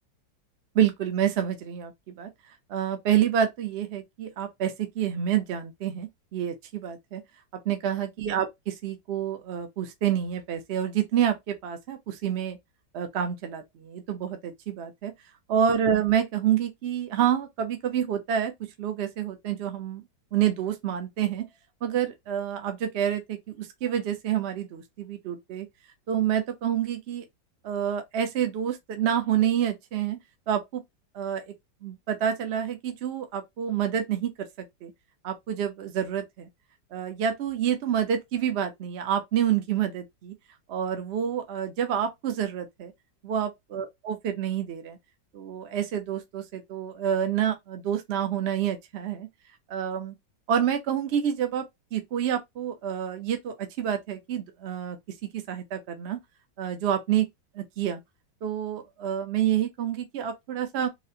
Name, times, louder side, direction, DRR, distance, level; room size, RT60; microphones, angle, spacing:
voice 1, 0.7-2.3 2.7-7.2 7.7-12.6 12.9-15.1 15.5-18.5 18.8-20.0 20.3-21.5 21.8-25.7 26.1-27.2 27.6-30.2 30.5-30.8 31.1-31.4 31.8-34.3 34.8-34.9 35.2-36.5 36.9-40.3 40.7-42.9 43.2-45.0 45.3-49.3 49.7-50.1 50.5-55.0 55.3-56.2 56.6-57.3 57.5-58.0 58.4-60.9, right 9 dB, 90° right, 0.5 m, -28 dB
4.0 x 2.1 x 2.6 m
omnidirectional pair, 2.0 m